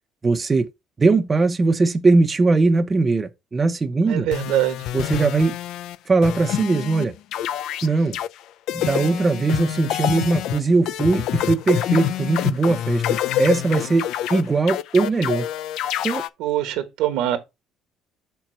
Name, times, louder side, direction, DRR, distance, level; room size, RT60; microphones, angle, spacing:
voice 1, 0.2-0.7 1.0-4.3 4.9-5.6 6.1-7.1 7.8-8.2 8.7-15.5 16.0-16.2, right 3 dB, 20° right, 0.6 m, -20 dB
voice 2, 4.1-4.9 16.4-17.4, right 12 dB, 80° right, 1.3 m, -23 dB
sound 1, 4.3-6.0 6.2-7.1 7.3-8.3 8.7-16.3, left 12 dB, 70° left, 0.4 m, -26 dB
6.0 x 4.4 x 4.3 m
cardioid pair, 145°, 0 cm